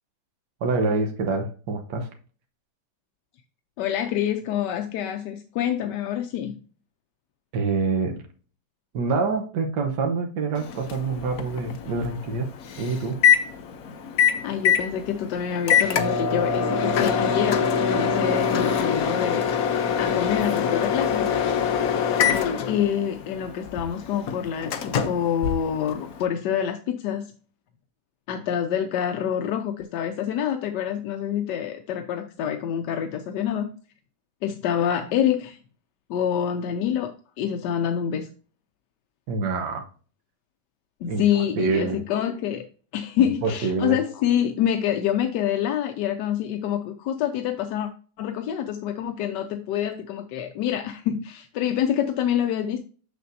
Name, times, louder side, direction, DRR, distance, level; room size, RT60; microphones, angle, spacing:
voice 1, 0.6-2.1 7.5-8.2 8.9-12.5 12.8-13.2 39.3-39.9 41.1-42.0 43.2-44.0, right 4 dB, 75° right, 1.6 m, -26 dB
voice 2, 3.8-6.6 14.4-19.5 20.0-21.3 22.7-27.3 28.3-33.7 34.4-35.6 36.1-37.1 37.4-38.3 41.0-42.6 42.9-47.9 48.2-52.8, left 9 dB, 85° left, 1.2 m, -26 dB
Microwave oven, 10.6-26.2, left 7 dB, 65° left, 1.1 m, -24 dB
6.8 x 6.6 x 2.6 m
omnidirectional pair, 1.9 m